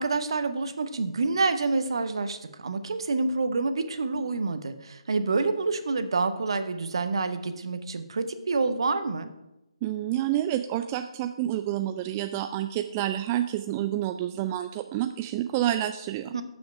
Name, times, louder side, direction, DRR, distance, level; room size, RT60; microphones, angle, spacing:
voice 1, 0.0-2.4 2.6-9.3 16.3-16.4, right 3 dB, 55° right, 10 dB, 0.8 m, -27 dB
voice 2, 9.8-16.3, right 12 dB, 20° right, 8 dB, 0.3 m, -28 dB
7.1 x 6.0 x 7.0 m, 0.94 s
figure-of-eight pair, 140°, 3 cm